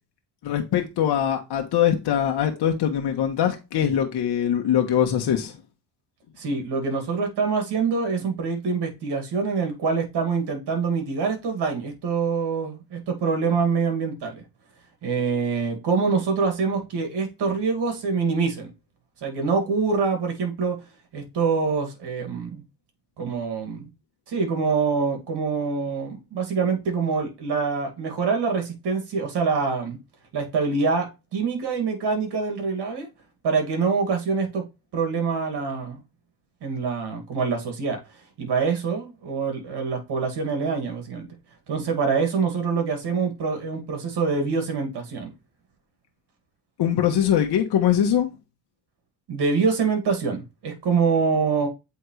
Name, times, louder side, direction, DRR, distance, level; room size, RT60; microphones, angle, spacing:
voice 1, 0.4-5.6 46.8-48.3, left 9 dB, 55° left, 1.3 m, -22 dB
voice 2, 6.4-14.4 15.0-18.7 19.2-20.8 21.1-22.6 23.2-23.9 24.3-30.0 30.3-33.1 33.4-34.6 34.9-36.0 36.6-38.0 38.4-41.3 41.7-45.3 49.3-51.7, right 5 dB, 55° right, 2.4 m, -25 dB
8.0 x 3.6 x 3.2 m
hypercardioid pair, 60°, 48 cm